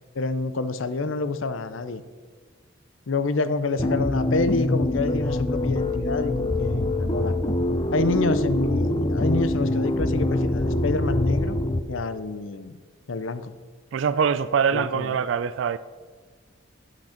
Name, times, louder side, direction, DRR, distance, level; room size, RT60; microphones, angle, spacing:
voice 1, 0.1-2.0 3.1-7.3 7.9-11.6 11.9-12.7 13.1-13.5 14.7-15.1, left 3 dB, 75° left, 0.6 m, -27 dB
sound 1, 3.8-11.8, left 1 dB, 25° left, 0.5 m, -24 dB
voice 2, 13.9-15.8, right 6 dB, 65° right, 0.3 m, -23 dB
11.5 x 6.0 x 5.8 m
head